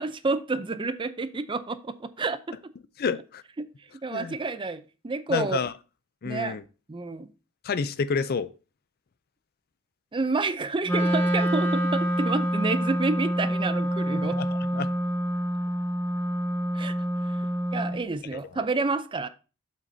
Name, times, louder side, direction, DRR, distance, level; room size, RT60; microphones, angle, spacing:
voice 1, 0.0-2.6 3.6-3.7 4.0-5.6 6.2-6.6 6.9-7.3 10.1-14.4 16.7-16.9 17.7-19.3, right 3 dB, 25° right, 0.5 m, -29 dB
voice 2, 3.0-3.4 4.1-4.4 5.3-5.7 6.2-6.6 7.6-8.5 14.4-14.9, left 5 dB, 45° left, 0.4 m, -29 dB
Wind instrument woodwind instrument, 10.8-18.0, equal, 10° left, 2.8 m, -27 dB
8.5 x 7.6 x 2.7 m
head